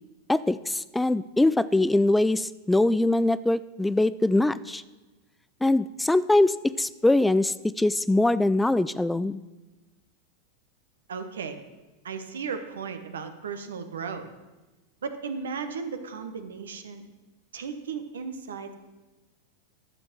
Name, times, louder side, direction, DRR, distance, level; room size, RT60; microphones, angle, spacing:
voice 1, 0.3-4.8 5.6-9.4, left 2 dB, 5° left, 16 dB, 0.3 m, -23 dB
voice 2, 11.1-11.6 12.0-14.3 15.0-17.0 17.5-18.7, right 5 dB, 75° right, 8 dB, 1.0 m, -35 dB
11.5 x 6.9 x 5.9 m, 1.2 s
hypercardioid pair, 90°, 0 cm